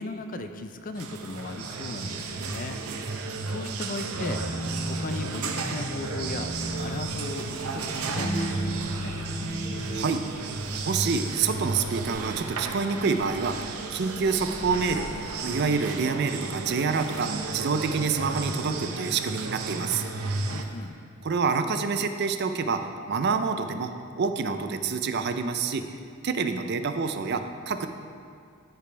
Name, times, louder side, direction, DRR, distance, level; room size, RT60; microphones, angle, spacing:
voice 1, 0.0-2.8 3.4-4.4 4.9-9.2 20.5-21.0, left 2 dB, 40° left, 8 dB, 0.4 m, -37 dB
sound 1, 1.0-20.6, right 4 dB, 85° right, 0.7 m, -34 dB
sound 2, 4.1-10.1, right 1 dB, 60° left, 1.3 m, -34 dB
sound 3, 6.5-20.9, left 1 dB, 20° left, 0.8 m, -50 dB
voice 2, 9.9-10.2 10.9-15.1 15.4-20.0 21.2-22.8 23.1-23.9 24.2-25.8 26.2-27.9, right 5 dB, 50° right, 8 dB, 0.4 m, -27 dB
14.5 x 5.1 x 3.3 m, 2.2 s
head